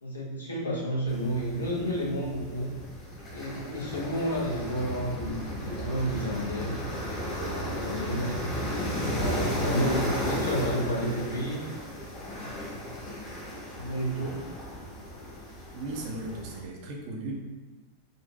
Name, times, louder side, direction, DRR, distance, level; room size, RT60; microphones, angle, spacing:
voice 1, 0.0-2.7 3.3-5.4 5.6-6.8 7.6-8.4 9.1-11.7 13.7-14.4, equal, 75° left, -4 dB, 0.8 m, -31 dB
sound 1, 1.1-16.6, equal, 30° left, 0.9 m, -34 dB
voice 2, 15.7-17.3, right 2 dB, 45° right, 0 dB, 0.6 m, -37 dB
3.8 x 2.4 x 2.2 m, 1.2 s
figure-of-eight pair, 90°, 0 cm